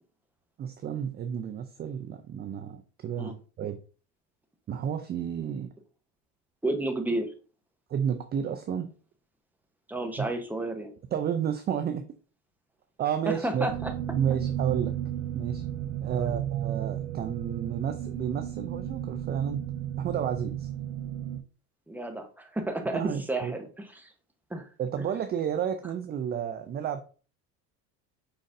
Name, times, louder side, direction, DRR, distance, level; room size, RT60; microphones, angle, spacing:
voice 1, 0.6-3.8 4.7-5.7 7.9-8.9 10.0-10.3 11.1-12.0 13.0-13.7 14.1-15.0 15.3-15.6 16.0-19.6 20.0-20.7 22.9-23.5 24.8-27.0, right 8 dB, 25° right, 7 dB, 0.3 m, -31 dB
voice 2, 6.6-7.3 9.9-10.9 13.4-13.9 16.1-16.3 21.9-23.0 23.3-24.1 24.5-24.6, right 1 dB, 5° right, 5 dB, 0.9 m, -31 dB
sound 1, 13.7-21.4, right 11 dB, 75° right, 0.6 m, -33 dB
5.1 x 3.9 x 2.5 m, 0.38 s
supercardioid pair, 90°, 43 cm